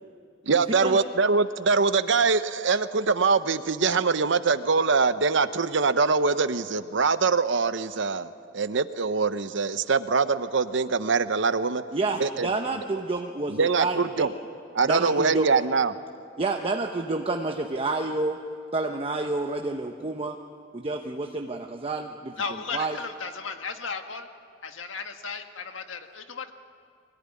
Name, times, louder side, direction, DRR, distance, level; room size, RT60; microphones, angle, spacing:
voice 1, 0.5-8.3 8.5-11.8 12.2-12.5 13.5-14.3 14.7-15.9, right 4 dB, 70° right, 12 dB, 0.9 m, -23 dB
voice 2, 11.9-14.3 14.8-15.5 16.4-18.4 18.7-20.4 20.7-22.3 22.7-23.0, right 2 dB, 30° right, 3 dB, 0.9 m, -29 dB
voice 3, 22.4-24.3 24.6-26.5, left 5 dB, 85° left, 6 dB, 1.6 m, -35 dB
24.5 x 18.5 x 9.9 m, 2.4 s
head